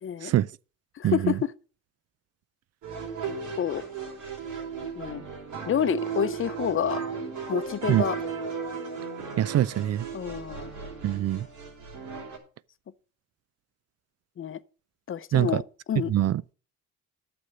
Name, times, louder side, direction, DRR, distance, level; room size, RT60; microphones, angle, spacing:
voice 1, 0.0-0.3 1.0-1.5 3.6-3.8 5.0-5.2 5.7-7.0 7.5-8.2 10.1-10.7 14.4-14.6 15.1-15.6 15.9-16.1, left 9 dB, 45° left, 0.7 m, -28 dB
voice 2, 1.0-1.4 7.9-8.0 9.4-10.1 11.0-11.5 15.3-15.6 16.1-16.4, right 12 dB, 55° right, 0.4 m, -24 dB
sound 1, 2.8-12.4, right 5 dB, 75° right, 4.2 m, -35 dB
9.7 x 6.9 x 6.3 m
cardioid pair, 90°, 30 cm